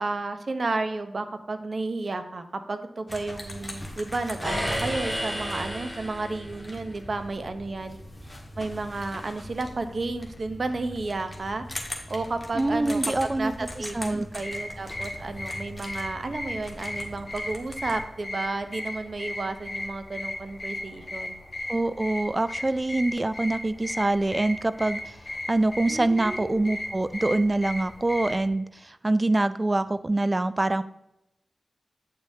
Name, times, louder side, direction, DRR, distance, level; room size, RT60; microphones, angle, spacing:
voice 1, 0.0-8.0 8.6-11.6 12.1-13.0 13.4-13.5 13.8-21.4 25.9-26.7, right 3 dB, 55° right, 9 dB, 0.8 m, -32 dB
sound 1, 3.1-18.0, left 1 dB, 20° left, 1.6 m, -41 dB
sound 2, 4.4-6.7, equal, 5° right, 2.6 m, -31 dB
voice 2, 12.5-14.3 21.7-25.2 25.5-30.8, right 2 dB, 30° right, 13 dB, 0.3 m, -25 dB
sound 3, 14.3-28.5, left 1 dB, 45° left, 1.7 m, -36 dB
9.0 x 6.4 x 2.8 m, 0.87 s
cardioid pair, 50°, 0 cm